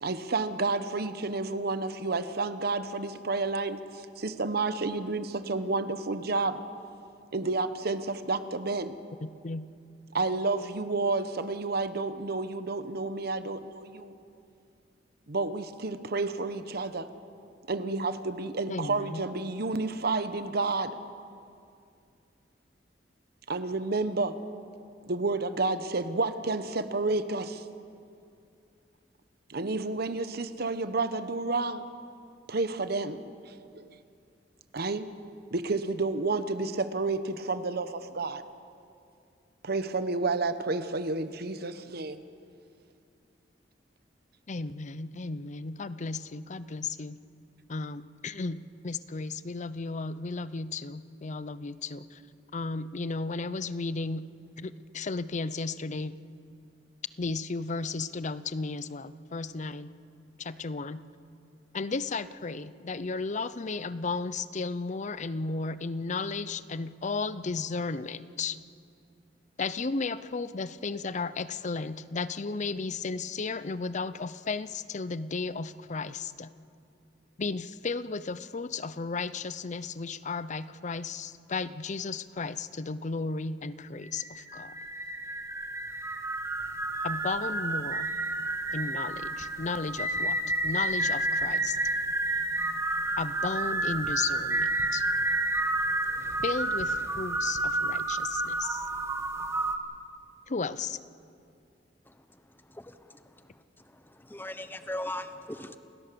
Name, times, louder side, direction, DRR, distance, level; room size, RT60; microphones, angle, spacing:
voice 1, 0.0-6.6 7.3-8.9 10.1-14.1 15.3-17.1 17.7-21.0 23.5-24.4 25.1-27.6 29.5-31.9 32.5-33.9 34.7-35.1 35.5-38.4 39.6-42.2, right 3 dB, 60° right, 11 dB, 1.0 m, -30 dB
voice 2, 9.2-9.7 18.7-19.2 44.5-47.2 47.7-52.2 52.5-54.3 54.6-56.2 57.2-59.9 60.4-61.0 61.7-68.6 69.6-76.5 77.4-84.8 87.0-88.1 88.7-91.8 93.2-95.0 96.4-98.8 100.5-101.0, left 4 dB, 40° left, 15 dB, 0.6 m, -34 dB
sound 1, 84.0-99.8, right 2 dB, 15° right, 1.2 m, -30 dB
voice 3, 102.7-103.5 103.8-105.8, left 1 dB, 10° left, 10 dB, 0.9 m, -39 dB
29.0 x 17.0 x 6.9 m, 2.4 s
head